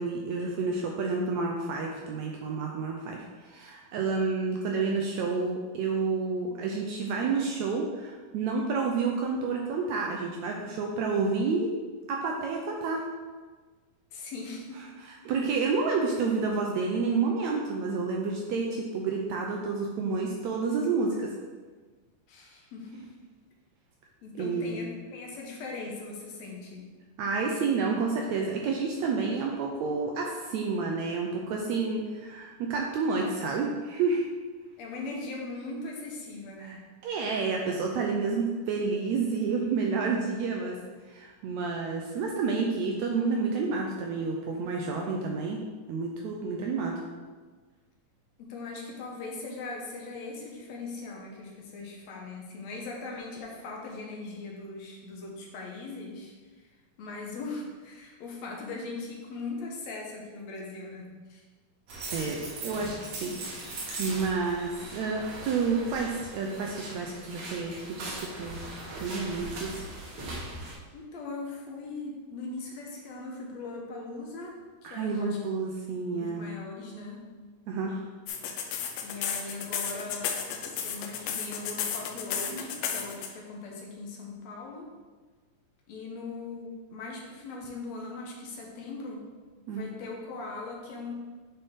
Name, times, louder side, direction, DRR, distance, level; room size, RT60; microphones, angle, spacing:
voice 1, 0.0-11.7 12.1-13.0 15.3-21.3 24.4-24.8 27.2-34.3 36.6-36.8 37.0-40.8 41.1-45.6 45.9-47.0 62.1-68.7 69.0-69.8 74.8-76.5 77.7-78.0 89.7-89.9, right 4 dB, 80° right, 0 dB, 1.6 m, -30 dB
voice 2, 14.1-14.8 22.3-23.1 24.2-26.9 34.8-36.9 48.4-56.7 57.0-61.4 70.9-74.6 74.8-75.4 76.1-77.3 79.0-80.4 80.6-84.9 85.9-89.2 89.7-91.1, left 3 dB, 65° left, -1 dB, 2.0 m, -40 dB
sound 1, 61.9-70.7, right 2 dB, 55° right, 1.7 m, -40 dB
sound 2, 78.3-83.3, left 7 dB, 85° left, 2.3 m, -32 dB
8.8 x 4.2 x 3.6 m, 1.4 s
omnidirectional pair, 3.8 m